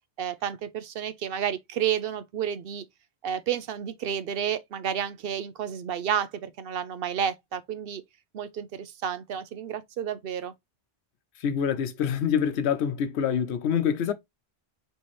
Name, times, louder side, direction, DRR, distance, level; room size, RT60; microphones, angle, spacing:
voice 1, 0.2-2.8 3.2-8.0 8.3-10.5, right 9 dB, 65° right, 0.7 m, -31 dB
voice 2, 11.4-14.1, left 8 dB, 80° left, 0.9 m, -26 dB
4.2 x 3.4 x 3.0 m
omnidirectional pair, 1.1 m